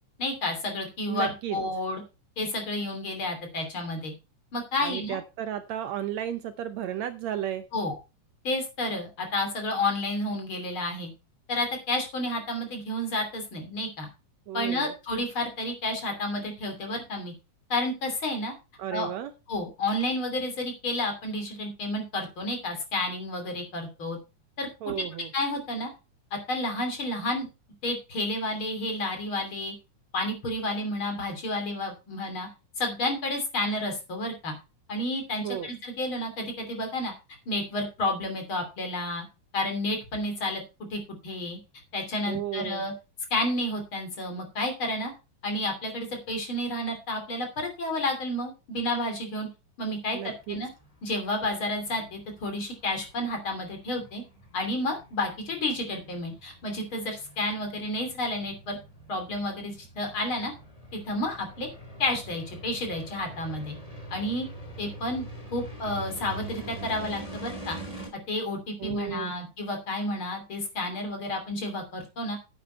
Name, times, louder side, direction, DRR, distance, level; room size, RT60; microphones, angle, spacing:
voice 1, 0.2-2.0 2.4-4.1 4.5-5.2 7.7-7.9 8.4-11.1 11.5-14.1 14.5-17.3 17.7-18.5 18.9-19.1 19.5-24.2 24.6-24.7 25.3-25.9 26.3-27.5 27.8-29.7 30.1-32.5 32.8-34.5 34.9-37.1 37.5-39.2 39.5-40.6 40.9-41.6 41.9-42.9 43.3-45.1 45.4-49.5 49.8-50.7 51.0-54.2 54.5-58.8 59.1-60.5 60.9-61.7 62.0-63.8 64.1-64.5 64.8-65.3 65.5-67.8 68.3-72.4, left 1 dB, 40° left, 4 dB, 3.6 m, -30 dB
voice 2, 1.1-1.6 4.8-7.6 14.5-14.9 18.8-19.3 24.8-25.3 35.4-35.7 42.3-42.9 50.1-50.6 68.8-69.3, right 11 dB, 75° right, 10 dB, 1.8 m, -33 dB
sound 1, 50.4-68.1, right 2 dB, 10° left, 3.2 m, -44 dB
9.6 x 8.7 x 4.4 m, 0.29 s
omnidirectional pair, 3.5 m